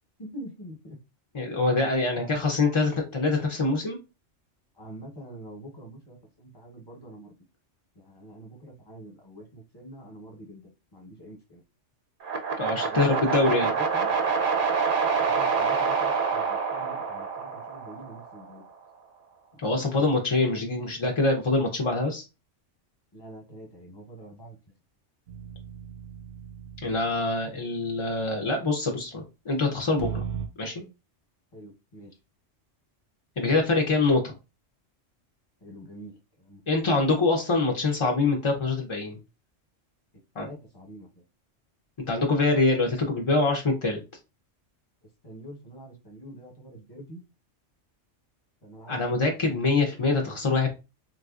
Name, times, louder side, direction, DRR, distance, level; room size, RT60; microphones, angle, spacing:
voice 1, 0.2-1.0 2.2-2.3 4.7-7.3 7.9-11.6 12.8-14.1 15.1-18.6 19.6-20.2 23.1-24.6 31.5-32.2 35.6-36.6 40.3-41.2 45.2-47.2 48.6-50.5, right 1 dB, 20° left, -1 dB, 0.9 m, -45 dB
voice 2, 1.3-4.0 12.6-13.7 19.6-22.2 26.8-30.2 30.6-30.8 33.4-34.3 36.7-39.2 40.4-40.5 42.0-44.0 48.9-50.7, left 3 dB, 45° left, 2 dB, 0.4 m, -24 dB
sound 1, 12.2-18.4, right 5 dB, 55° right, 0.6 m, -26 dB
sound 2, 25.3-27.2 30.0-30.5, right 7 dB, 85° right, 1.0 m, -36 dB
3.9 x 2.6 x 2.4 m, 0.27 s
omnidirectional pair, 1.3 m